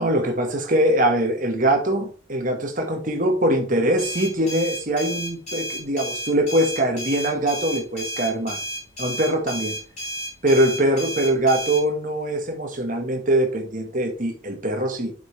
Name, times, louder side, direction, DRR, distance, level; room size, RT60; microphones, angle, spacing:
voice 1, 0.0-8.6 9.0-9.8 10.4-15.1, right 1 dB, 40° right, 1.5 m, -22 dB
sound 1, 4.0-11.8, right 1 dB, 35° left, 3.8 m, -32 dB
7.4 x 5.5 x 3.3 m
head